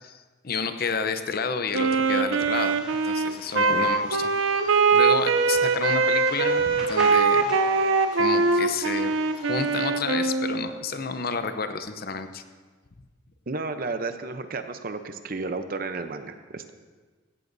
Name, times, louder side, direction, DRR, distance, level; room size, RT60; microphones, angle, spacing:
voice 1, 0.0-2.8 3.0-4.3 4.6-7.6 8.1-12.4, left 5 dB, 50° left, 9 dB, 0.7 m, -31 dB
Wind instrument woodwind instrument, 1.7-10.7, right 4 dB, 80° right, 0.6 m, -22 dB
sound 1, 2.5-9.8, equal, 5° right, 3.5 m, -43 dB
voice 2, 3.5-3.9 13.5-16.7, right 3 dB, 45° right, 9 dB, 0.7 m, -32 dB
16.5 x 14.5 x 2.7 m, 1.4 s
head